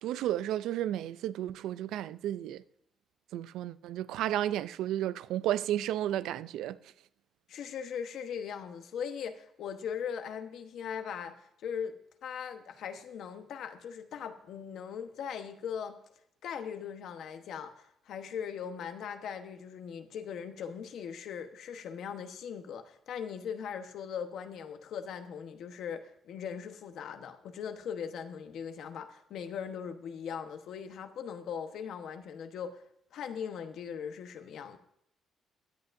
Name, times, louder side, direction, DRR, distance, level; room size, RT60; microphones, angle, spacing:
voice 1, 0.0-2.6 3.3-6.8, right 12 dB, 85° right, 0.3 m, -32 dB
voice 2, 7.5-16.0 16.4-32.8 33.1-34.8, left 7 dB, 75° left, 1.1 m, -40 dB
16.5 x 10.5 x 2.6 m
cardioid pair, 90°, 0 cm